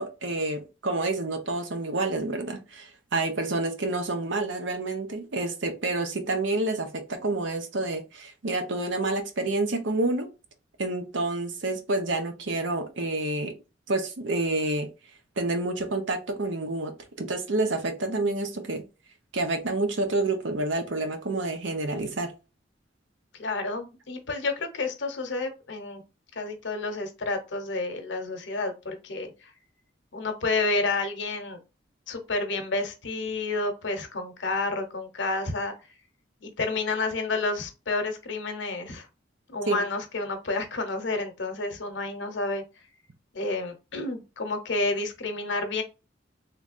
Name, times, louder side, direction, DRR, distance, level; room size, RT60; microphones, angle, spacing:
voice 1, 0.0-10.3 10.8-13.5 13.9-14.9 15.4-18.8 19.3-22.3 39.7-39.8, right 2 dB, 85° right, 0.8 m, -28 dB
voice 2, 23.4-26.0 26.4-29.5 30.1-31.6 32.1-35.7 36.4-39.1 39.5-42.6 43.3-45.8, left 3 dB, 70° left, 0.8 m, -30 dB
3.3 x 3.2 x 2.5 m
head